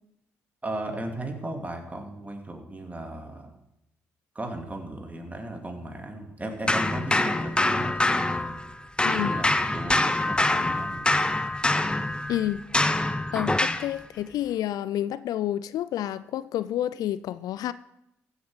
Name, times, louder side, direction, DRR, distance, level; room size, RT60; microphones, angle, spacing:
voice 1, 0.6-3.5 4.3-8.6 9.1-11.3, right 1 dB, 20° right, 2.4 m, -36 dB
sound 1, 6.7-8.7 9.0-13.9, left 2 dB, 15° left, 0.7 m, -25 dB
voice 2, 9.0-9.3 12.3-12.6 13.3-17.7, left 12 dB, 65° left, 0.4 m, -29 dB
14.5 x 7.2 x 4.9 m
hypercardioid pair, 50°, 7 cm